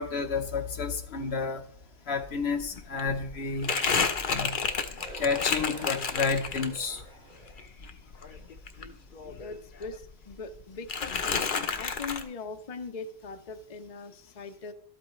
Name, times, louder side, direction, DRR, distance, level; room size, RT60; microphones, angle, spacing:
voice 1, 0.0-1.7 2.1-3.8 4.2-4.6 5.2-7.0, left 5 dB, 80° left, 1.3 m, -30 dB
Crumpling crinkling, 2.2-2.3 2.6-7.0 7.4-9.6 9.8-10.6 10.9-12.2, left 5 dB, 55° left, 1.0 m, -31 dB
sound 1, 5.0-6.1 6.6-7.6 8.2-8.6, right 1 dB, 50° right, 2.2 m, -46 dB
voice 2, 9.4-11.4 11.7-14.7, left 4 dB, 40° left, 0.8 m, -41 dB
12.5 x 8.5 x 3.1 m
omnidirectional pair, 1.1 m